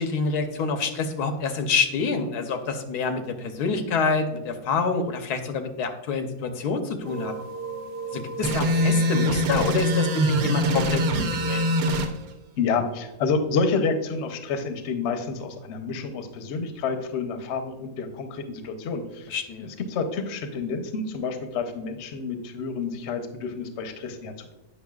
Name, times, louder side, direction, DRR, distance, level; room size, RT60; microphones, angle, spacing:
voice 1, 0.0-7.3 8.1-11.7 19.3-19.7, left 4 dB, 90° left, 7 dB, 1.3 m, -27 dB
sound 1, 7.0-12.1, right 4 dB, 50° right, 0.7 m, -35 dB
sound 2, 8.4-12.1, equal, 75° right, 1.2 m, -23 dB
voice 2, 12.6-24.5, left 4 dB, 55° left, 7 dB, 0.9 m, -29 dB
8.7 x 5.5 x 2.3 m, 1.0 s
omnidirectional pair, 1.6 m